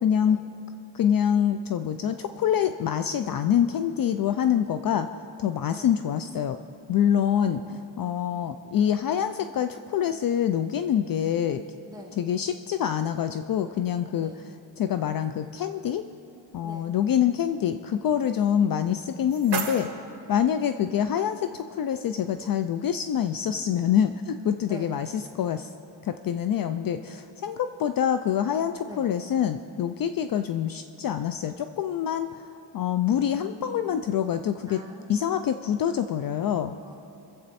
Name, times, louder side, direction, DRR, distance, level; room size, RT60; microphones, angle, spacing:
voice 1, 0.0-0.4 0.9-5.1 5.4-6.6 6.9-11.6 12.2-14.3 14.8-16.0 16.5-19.9 20.3-25.7 26.0-32.4 32.7-34.8 35.1-36.8, left 9 dB, 50° left, 10 dB, 0.5 m, -26 dB
voice 2, 7.4-7.9 11.9-12.2 14.2-14.4 16.6-16.9 20.5-21.1 24.7-25.0 28.8-29.1 33.3-33.6 34.7-35.5 36.8-37.0, equal, 10° right, -1 dB, 1.8 m, -45 dB
sound 1, 18.8-20.8, right 5 dB, 55° right, 2.2 m, -35 dB
23.5 x 7.8 x 4.2 m, 2.9 s
cardioid pair, 120°, 45 cm